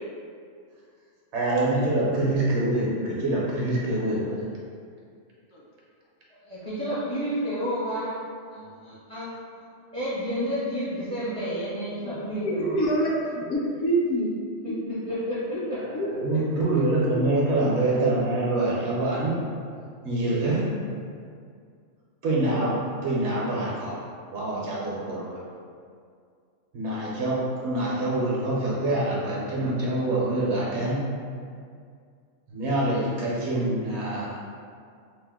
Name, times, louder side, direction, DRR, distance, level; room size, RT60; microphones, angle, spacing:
voice 1, 1.3-4.4 16.0-19.3 20.0-20.6 22.2-24.0 24.3-25.4 26.7-31.0 32.5-34.4, right 2 dB, 65° right, -6 dB, 0.9 m, -25 dB
voice 2, 6.5-9.3 9.9-12.8 14.6-15.8, equal, 40° right, -11 dB, 0.5 m, -31 dB
voice 3, 12.4-14.3 14.8-15.0 15.5-15.6 15.9-16.0 17.1-17.2, right 1 dB, 75° left, -4 dB, 0.9 m, -26 dB
2.7 x 2.1 x 3.4 m, 2.2 s
omnidirectional pair, 1.4 m